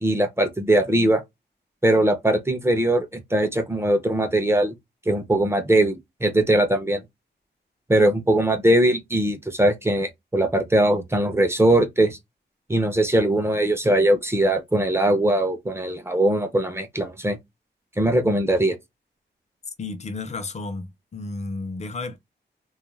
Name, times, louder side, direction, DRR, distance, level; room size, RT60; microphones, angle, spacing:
voice 1, 0.0-1.2 1.8-4.7 5.1-7.0 7.9-12.2 12.7-17.4 18.0-18.8, right 1 dB, 15° right, 0.6 m, -21 dB
voice 2, 19.8-22.2, left 3 dB, 40° left, 0.5 m, -32 dB
2.3 x 2.2 x 3.1 m
wide cardioid pair, 135°, 19 cm